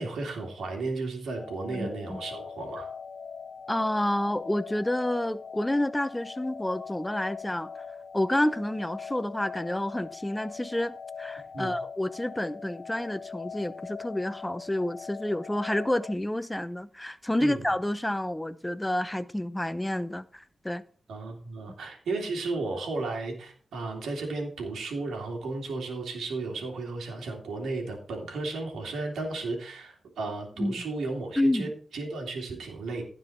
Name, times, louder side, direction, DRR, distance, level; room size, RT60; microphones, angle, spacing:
voice 1, 0.0-2.9 11.5-11.7 17.4-17.6 21.1-33.0, right 3 dB, 90° right, 3.1 m, -34 dB
sound 1, 1.3-16.1, left 5 dB, 60° left, 0.5 m, -42 dB
voice 2, 1.6-2.2 3.7-7.7 8.1-20.8 30.6-30.7 31.4-31.7, left 1 dB, 10° left, 0.7 m, -29 dB
15.5 x 5.4 x 4.4 m
cardioid pair, 50°, 0 cm